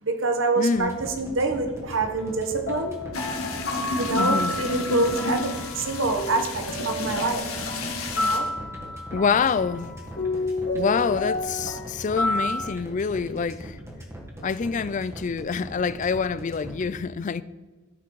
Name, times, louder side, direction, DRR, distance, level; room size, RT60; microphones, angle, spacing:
voice 1, 0.0-0.9 1.2-2.9 4.0-5.5 5.7-7.4 8.1-8.5, right 3 dB, 60° right, 1.2 m, -26 dB
voice 2, 0.6-1.0 4.1-4.6 9.1-9.9 10.7-13.8 14.4-17.4, left 5 dB, 35° left, 0.4 m, -26 dB
sound 1, 0.8-16.9, equal, 15° right, 1.6 m, -40 dB
sound 2, 2.1-12.7, left 2 dB, 55° left, 1.9 m, -31 dB
sound 3, 3.1-8.4, left 3 dB, 90° left, 1.6 m, -32 dB
13.0 x 6.1 x 4.7 m
head